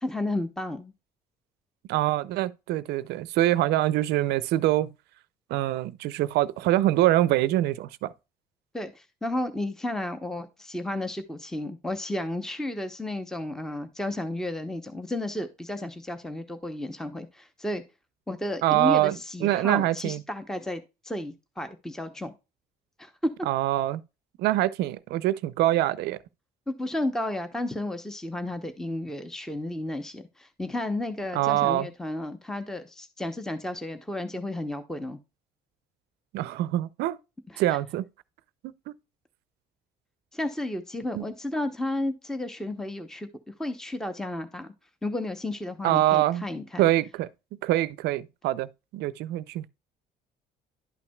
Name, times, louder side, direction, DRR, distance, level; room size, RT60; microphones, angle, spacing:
voice 1, 0.0-0.9 8.7-17.8 18.3-22.3 23.0-23.1 26.7-35.2 37.5-37.6 40.3-43.3 43.6-44.7 45.0-46.8, left 1 dB, 5° left, 0.7 m, -32 dB
voice 2, 1.9-4.9 5.5-8.1 18.6-20.2 23.5-24.0 24.4-26.2 31.3-31.9 36.3-37.2 37.6-38.0 41.1-41.3 45.8-46.4 46.8-47.3 47.6-49.7, right 14 dB, 80° right, 0.4 m, -24 dB
11.0 x 5.9 x 2.2 m
cardioid pair, 110°, 17 cm